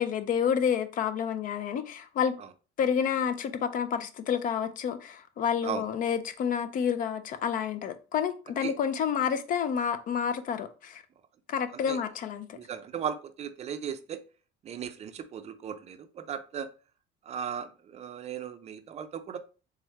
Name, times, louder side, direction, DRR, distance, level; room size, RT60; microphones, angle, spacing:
voice 1, 0.0-2.4 2.8-11.0 11.5-12.6, left 7 dB, 45° left, 0.5 m, -29 dB
voice 2, 12.5-14.2 14.6-16.7 17.3-19.4, right 8 dB, 35° right, 0.4 m, -37 dB
3.6 x 3.2 x 3.1 m
cardioid pair, 135°, 19 cm